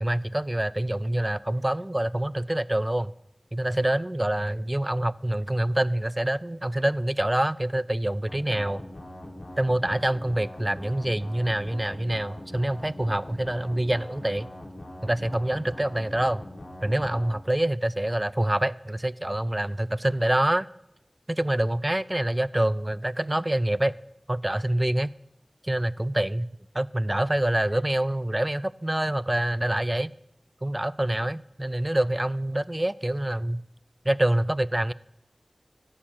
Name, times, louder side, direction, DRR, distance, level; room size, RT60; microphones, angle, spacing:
voice 1, 0.0-3.1 3.5-8.8 9.6-14.5 15.0-16.4 16.8-20.7 21.3-24.0 24.3-25.1 25.6-26.5 26.7-30.1 30.6-33.6 34.1-34.9, right 1 dB, 25° right, 19 dB, 0.3 m, -26 dB
sound 1, 8.3-17.3, left 1 dB, 80° left, 1.7 m, -42 dB
13.0 x 4.5 x 7.4 m, 0.84 s
wide cardioid pair, 40°, 0 cm